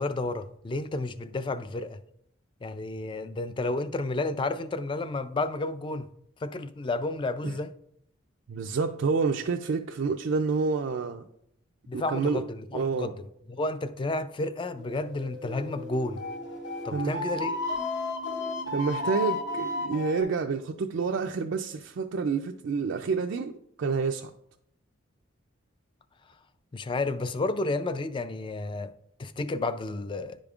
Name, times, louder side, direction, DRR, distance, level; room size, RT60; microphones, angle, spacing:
voice 1, 0.0-2.0 2.6-6.1 6.4-7.7 11.9-12.4 12.7-13.1 13.5-16.2 16.8-17.5 26.7-28.9 29.2-30.4, left 2 dB, 25° left, 0.3 m, -31 dB
voice 2, 8.5-11.3 11.9-12.5 12.7-13.1 16.9-17.2 18.7-24.3, right 4 dB, 65° right, 0.3 m, -28 dB
sound 1, 14.8-20.2, left 2 dB, 60° left, 1.0 m, -33 dB
10.5 x 5.1 x 2.4 m
head